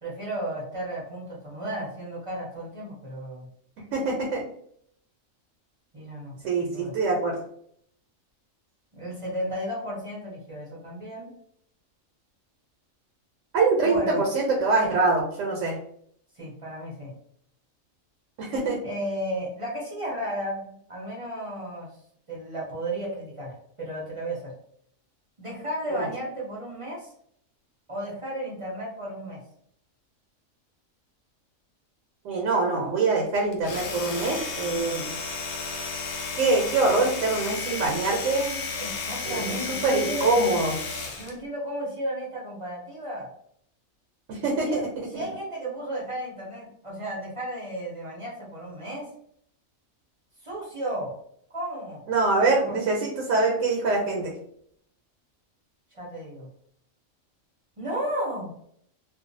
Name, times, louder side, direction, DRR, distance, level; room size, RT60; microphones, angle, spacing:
voice 1, 0.0-3.5 5.9-6.4 6.6-6.9 8.9-11.3 13.8-14.2 16.4-17.1 18.8-21.9 22.3-24.5 25.4-27.1 27.9-29.4 38.8-40.3 41.2-43.3 44.6-49.0 50.4-51.1 51.5-52.0 52.6-52.8 55.9-56.5 57.8-58.5, right 1 dB, 35° right, -4 dB, 0.5 m, -33 dB
voice 2, 3.9-4.4 6.4-7.4 13.5-15.8 18.4-18.8 26.0-26.1 32.2-35.1 36.3-38.6 39.2-39.5 39.8-40.8 44.3-45.1 52.1-54.3, right 3 dB, 75° right, 1 dB, 0.9 m, -24 dB
Domestic sounds home sounds, 33.5-41.4, left 4 dB, 65° left, 0.8 m, -33 dB
2.4 x 2.2 x 2.5 m, 0.66 s
omnidirectional pair, 1.4 m